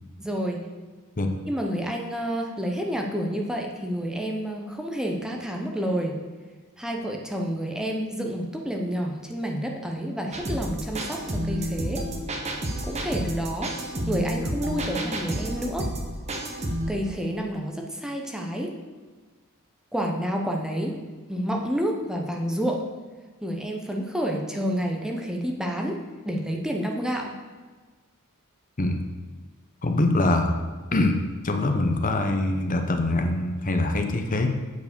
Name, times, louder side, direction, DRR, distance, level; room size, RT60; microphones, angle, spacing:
voice 1, 0.2-0.6 1.5-6.2 6.8-12.0 12.8-13.7 14.1-15.9 16.9-18.7 19.9-21.0 21.3-22.8 23.4-26.0 26.2-27.4, equal, 5° right, 1 dB, 0.7 m, -29 dB
sound 1, 10.3-16.9, right 1 dB, 30° right, 1.0 m, -30 dB
voice 2, 29.8-30.5 30.9-31.2 31.4-34.5, left 2 dB, 35° left, 5 dB, 0.8 m, -23 dB
8.3 x 4.7 x 6.7 m, 1.4 s
head